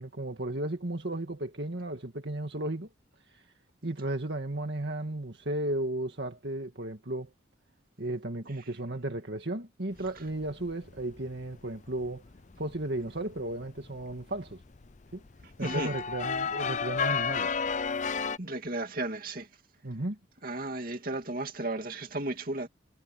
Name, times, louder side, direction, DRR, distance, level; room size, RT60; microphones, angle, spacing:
voice 1, 0.0-2.9 3.3-3.4 3.8-7.3 8.0-12.2 12.6-14.6 15.1-15.2 15.6-17.5 19.8-20.2, right 1 dB, 65° right, 1.9 m, -34 dB
sound 1, 10.0-18.4, left 5 dB, 40° left, 0.5 m, -33 dB
voice 2, 15.6-15.9 18.4-19.5 20.4-22.7, right 2 dB, 50° right, 2.8 m, -34 dB
head